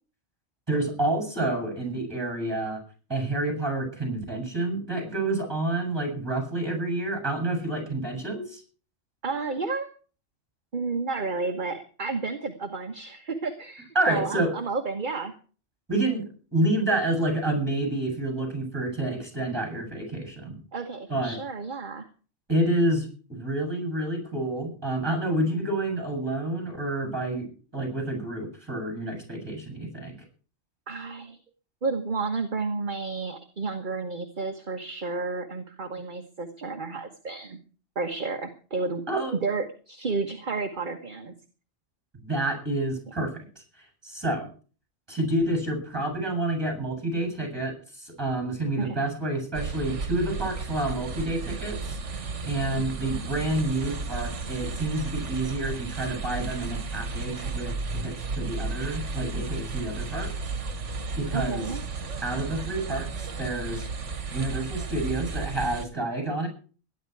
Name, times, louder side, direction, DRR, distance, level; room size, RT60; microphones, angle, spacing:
voice 1, 0.7-2.8 3.1-8.6 13.9-14.5 15.9-16.2 16.5-20.6 21.1-21.4 22.5-27.5 27.7-30.1 39.1-39.4 42.2-44.5 45.1-57.7 58.0-60.6 61.2-61.7 62.2-63.8 64.3-66.5, right 2 dB, 20° right, 4 dB, 8.0 m, -29 dB
voice 2, 9.2-9.9 10.7-15.3 20.7-22.1 30.9-31.4 31.8-37.6 37.9-39.0 39.4-41.3 48.8-48.9 52.8-52.9 61.3-61.8, right 4 dB, 40° right, 6 dB, 1.4 m, -31 dB
sound 1, 49.5-65.9, right 4 dB, 70° right, 1.7 m, -33 dB
21.0 x 11.0 x 4.7 m, 0.39 s
omnidirectional pair, 1.3 m